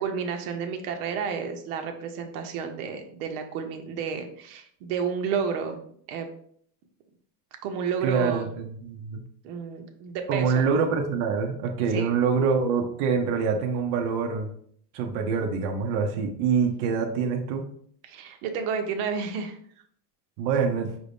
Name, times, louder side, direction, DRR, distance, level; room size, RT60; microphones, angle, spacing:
voice 1, 0.0-5.8 6.1-6.3 7.6-8.4 9.4-10.6 11.9-12.1 18.0-19.6, right 6 dB, 75° right, 5 dB, 0.9 m, -31 dB
voice 2, 8.0-9.2 10.3-14.5 14.9-17.7 20.4-20.9, right 5 dB, 45° right, 1 dB, 0.6 m, -25 dB
5.5 x 2.6 x 3.4 m, 0.62 s
cardioid pair, 170°, 46 cm